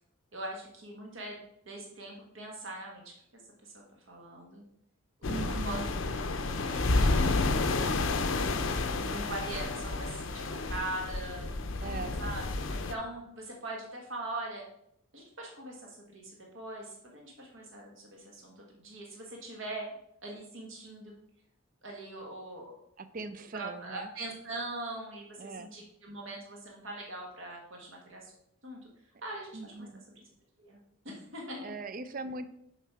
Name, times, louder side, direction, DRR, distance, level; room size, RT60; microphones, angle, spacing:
voice 1, 0.3-1.4 1.6-3.0 3.3-4.6 5.5-5.8 6.1-7.5 8.9-11.5 12.2-14.6 15.1-19.8 20.2-21.1 21.8-22.8 23.5-28.3 28.6-28.8 29.2-29.9 30.1-30.2 30.6-30.8 31.0-31.7, right 2 dB, 65° right, -1 dB, 1.3 m, -42 dB
sound 1, 5.2-12.9, left 3 dB, 65° left, 0.6 m, -30 dB
voice 2, 5.3-5.9 11.8-12.2 23.0-24.1 25.4-25.7 29.5-30.0 31.6-32.5, right 3 dB, 40° right, 12 dB, 0.4 m, -40 dB
7.3 x 4.2 x 4.6 m, 0.75 s
head